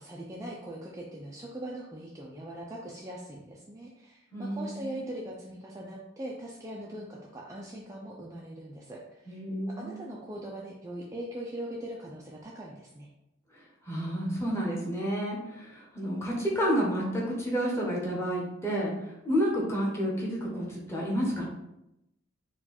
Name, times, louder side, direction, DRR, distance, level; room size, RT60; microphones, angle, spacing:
voice 1, 0.0-9.4 9.8-13.1, right 1 dB, 15° right, -3 dB, 0.4 m, -41 dB
voice 2, 4.3-5.0 9.3-10.1 13.9-21.4, equal, 15° left, -4 dB, 1.0 m, -30 dB
4.4 x 2.3 x 4.2 m, 0.87 s
head